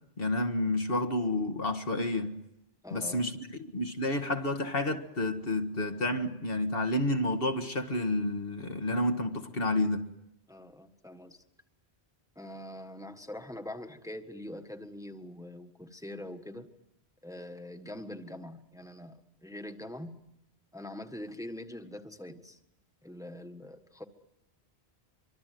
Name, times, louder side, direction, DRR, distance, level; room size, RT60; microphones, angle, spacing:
voice 1, 0.2-2.4 2.9-3.4 3.7-10.1, left 1 dB, 65° left, 2.0 m, -30 dB
voice 2, 2.8-3.3 10.5-11.4 12.3-16.7 17.2-20.1 20.7-22.6 23.0-24.0, left 1 dB, 5° right, 1.5 m, -43 dB
25.0 x 25.0 x 9.3 m
omnidirectional pair, 1.1 m